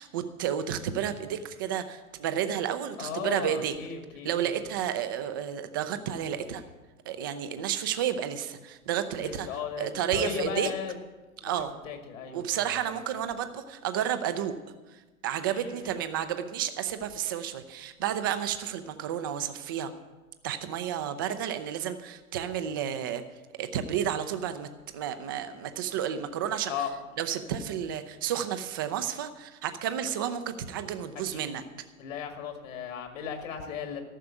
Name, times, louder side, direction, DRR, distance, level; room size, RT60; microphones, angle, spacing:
voice 1, 0.0-3.7 4.2-6.6 7.1-9.5 9.8-10.7 11.4-11.7 12.3-14.5 14.9-19.9 20.4-23.2 23.6-26.7 27.2-31.6, right 9 dB, 15° right, 10 dB, 0.3 m, -31 dB
voice 2, 3.0-4.6 9.2-9.9 10.1-10.9 11.4-11.5 11.8-12.8 15.5-15.9 26.7-26.9 31.3-31.4 32.0-34.0, left 7 dB, 60° left, 5 dB, 2.0 m, -36 dB
13.5 x 6.7 x 9.2 m, 1.2 s
figure-of-eight pair, 110°, 44 cm